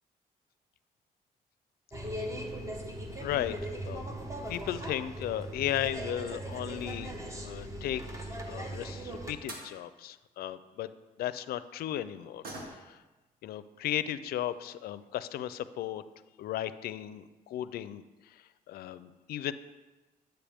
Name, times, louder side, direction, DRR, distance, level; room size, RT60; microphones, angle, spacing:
sound 1, 1.9-9.3, right 1 dB, 20° right, 0.9 m, -39 dB
voice 1, 3.2-3.6 3.8-4.1 4.5-7.1 7.4-10.9 11.2-12.4 12.9-13.0 13.4-16.0 16.4-18.0 18.7-19.5, left 12 dB, 85° left, 14 dB, 0.4 m, -35 dB
sound 2, 6.7-7.6 9.1-9.2 9.5-9.8 12.4-13.1 13.5-13.6 14.0-14.1 14.9-15.0 15.3-15.4 15.8-16.1 16.4-16.5 16.8-16.9, right 2 dB, 80° right, 1.6 m, -47 dB
10.0 x 7.8 x 3.5 m, 1.2 s
cardioid pair, 135°, 15 cm